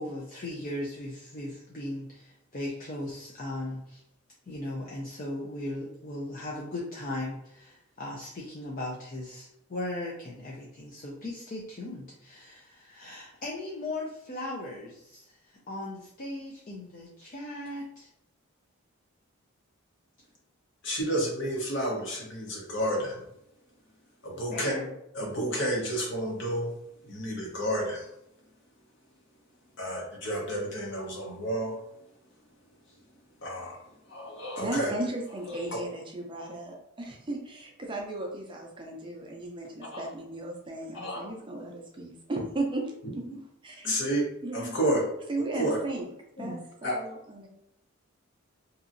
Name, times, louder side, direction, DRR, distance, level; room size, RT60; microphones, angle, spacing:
voice 1, 0.0-4.0 4.5-18.1 24.3-24.9, left 1 dB, 40° left, -3 dB, 0.4 m, -38 dB
voice 2, 20.8-23.2 24.2-24.7 25.1-26.7 27.0-28.1 29.8-31.8 33.4-33.8 34.1-34.9 35.5-35.7 39.9-40.1 40.9-41.3 43.8-44.2 44.5-45.0 45.6-45.8 46.4-46.5 46.8-47.0, right 1 dB, 55° left, -2 dB, 0.9 m, -30 dB
voice 3, 34.6-43.2 43.6-43.9 44.4-44.8 45.3-46.1 46.4-47.5, right 2 dB, 25° right, 0 dB, 0.4 m, -35 dB
2.8 x 2.6 x 2.5 m, 0.80 s
head